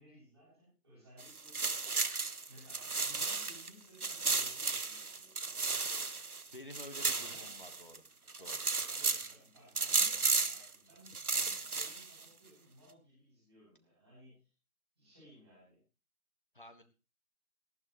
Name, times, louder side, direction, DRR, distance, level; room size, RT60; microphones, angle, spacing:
voice 1, 0.0-1.8 2.5-6.2 7.2-7.6 8.4-14.5 15.0-15.8, equal, 20° right, -9 dB, 7.1 m, -60 dB
sound 1, 1.2-3.7 4.0-8.0 8.3-9.3 9.8-10.7 11.1-12.2, right 4 dB, 80° right, 1.1 m, -34 dB
voice 2, 6.5-8.0 8.4-8.6 16.5-16.8, left 1 dB, 35° left, 8 dB, 1.5 m, -50 dB
18.5 x 13.0 x 3.1 m, 0.31 s
figure-of-eight pair, 170°, 44 cm